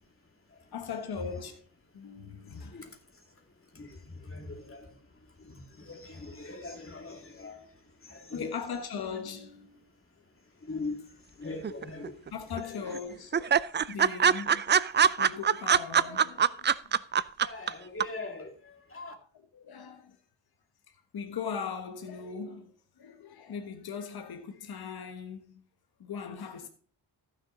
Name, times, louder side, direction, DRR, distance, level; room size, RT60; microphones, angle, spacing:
voice 1, 0.7-1.6 1.9-2.9 8.3-9.8 11.0-11.2 12.3-13.6 13.9-14.6 15.0-16.6 16.8-17.0 17.4-17.5 19.3-20.2 21.1-25.6 26.0-26.7, left 6 dB, 55° left, 1.4 m, -39 dB
voice 2, 4.2-4.9 5.5-7.6 8.1-8.5 10.7-11.0 11.4-12.1 17.4-19.1, left 3 dB, 30° left, 2.5 m, -40 dB
sound 1, 11.6-12.3 12.6-12.7 12.9-13.0 13.3-17.7 18.0-18.1, right 7 dB, 25° right, 0.4 m, -23 dB
14.0 x 6.4 x 3.9 m
cardioid pair, 80°, 44 cm